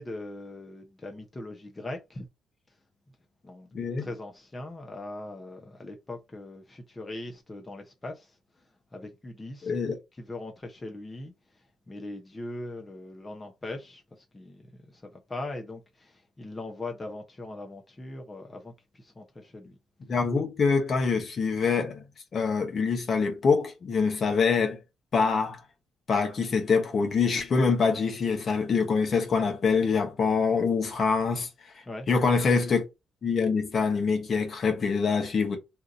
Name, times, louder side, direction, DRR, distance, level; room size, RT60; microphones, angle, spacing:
voice 1, 0.0-2.3 3.4-3.7 4.0-8.4 8.9-9.9 10.2-11.3 11.9-14.6 14.9-19.8 31.9-32.1, left 2 dB, 20° left, 0.8 m, -40 dB
voice 2, 3.7-4.1 9.6-10.0 20.1-22.0 22.3-24.8 25.1-25.6 26.1-31.5 31.7-32.8 33.2-35.6, left 5 dB, 50° left, 1.0 m, -25 dB
2.8 x 2.6 x 3.6 m
cardioid pair, 90°, 0 cm